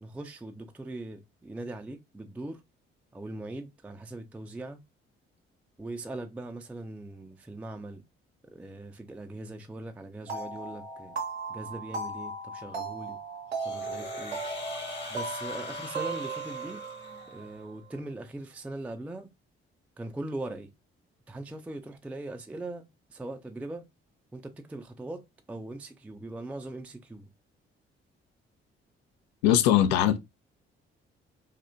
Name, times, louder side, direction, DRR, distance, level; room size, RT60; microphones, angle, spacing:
voice 1, 0.0-2.6 3.1-4.8 5.8-8.0 8.5-11.1 11.5-13.2 13.6-14.4 15.1-16.8 17.3-19.3 20.0-20.7 21.3-23.9 24.3-27.3, right 2 dB, 5° right, 0.4 m, -40 dB
sound 1, 10.3-17.7, right 4 dB, 85° right, 0.6 m, -37 dB
sound 2, 13.6-17.6, left 3 dB, 35° left, 1.0 m, -42 dB
voice 2, 29.4-30.2, left 11 dB, 70° left, 0.5 m, -21 dB
3.3 x 2.7 x 2.6 m
figure-of-eight pair, 40°, 32 cm